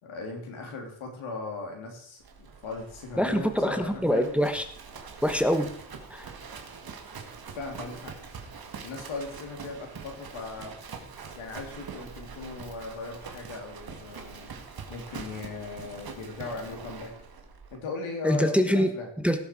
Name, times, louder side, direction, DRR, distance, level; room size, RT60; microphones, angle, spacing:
voice 1, 0.0-4.3 7.5-8.1 8.8-10.8 11.3-14.5 14.9-17.1 17.7-19.1, left 3 dB, 80° left, 2 dB, 3.6 m, -38 dB
Livestock farm animals working animals, 2.2-17.8, right 5 dB, 50° right, 2.1 m, -44 dB
voice 2, 3.2-4.6 5.2-5.7 6.1-6.3 18.2-18.9 19.2-19.4, equal, 5° right, 8 dB, 1.1 m, -24 dB
17.5 x 7.0 x 4.7 m, 0.62 s
cardioid pair, 105°, 48 cm